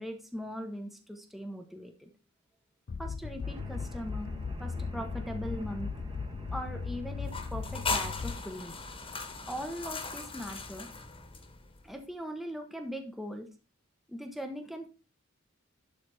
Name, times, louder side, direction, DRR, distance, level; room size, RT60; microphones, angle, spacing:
voice 1, 0.0-2.1 3.0-4.3 4.6-5.9 6.5-8.8 9.5-10.9 11.8-13.5 14.1-14.9, equal, ahead, 4 dB, 1.0 m, -40 dB
sound 1, 2.9-8.7, left 5 dB, 45° left, 0.4 m, -37 dB
sound 2, 3.4-10.9, right 1 dB, 25° right, 1.4 m, -48 dB
sound 3, 7.2-11.8, left 4 dB, 25° left, 1.5 m, -38 dB
11.5 x 4.2 x 4.8 m, 0.32 s
head